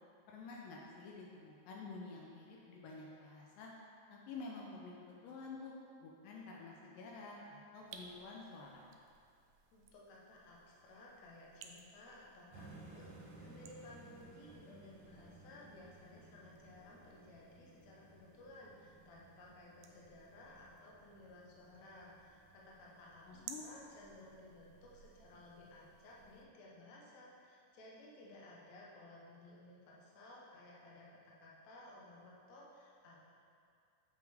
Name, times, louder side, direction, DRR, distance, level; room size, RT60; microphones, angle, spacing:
voice 1, 0.3-3.7 4.1-5.7 6.0-8.9 23.3-23.6, left 3 dB, 80° left, -2 dB, 2.3 m, -50 dB
sound 1, 7.8-26.5, right 6 dB, 80° right, 1.8 m, -60 dB
voice 2, 9.7-23.3 23.6-33.2, left 1 dB, 65° left, -4 dB, 2.0 m, -57 dB
sound 2, 12.5-26.5, right 2 dB, 55° right, 2.2 m, -60 dB
7.8 x 5.0 x 3.5 m, 2.4 s
omnidirectional pair, 3.9 m